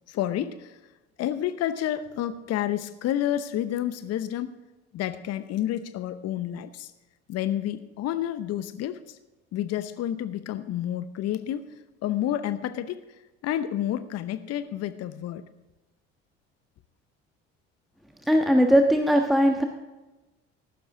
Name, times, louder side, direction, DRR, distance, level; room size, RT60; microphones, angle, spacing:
voice 1, 0.1-0.8 1.2-4.6 4.9-6.9 7.3-9.2 9.5-11.7 12.0-13.1 13.4-15.4, left 11 dB, 50° left, 13 dB, 0.8 m, -29 dB
voice 2, 18.3-19.6, equal, ahead, 3 dB, 1.4 m, -19 dB
15.0 x 12.0 x 3.8 m, 1.1 s
hypercardioid pair, 60°, 33 cm